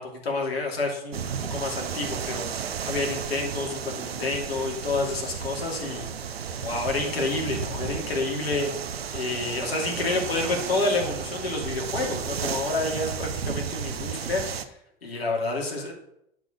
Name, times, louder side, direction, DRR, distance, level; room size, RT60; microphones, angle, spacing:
voice 1, 0.0-6.1 6.6-14.7 15.0-15.9, left 3 dB, 85° left, 0 dB, 2.6 m, -29 dB
sound 1, 1.1-14.6, right 7 dB, 85° right, 0.8 m, -33 dB
10.5 x 4.8 x 6.4 m, 0.78 s
hypercardioid pair, 85°, 30 cm